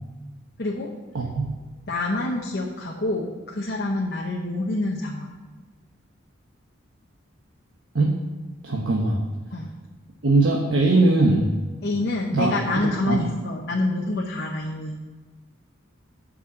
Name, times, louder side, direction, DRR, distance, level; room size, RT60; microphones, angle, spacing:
voice 1, 0.6-0.9 1.9-5.3 9.5-9.7 11.8-14.9, left 2 dB, 55° left, -1 dB, 0.9 m, -27 dB
voice 2, 1.1-1.5 7.9-8.2 8.6-9.2 10.2-11.5 12.3-12.5 13.1-13.2, right 2 dB, 85° right, 0 dB, 1.1 m, -20 dB
8.3 x 5.5 x 7.5 m, 1.3 s
head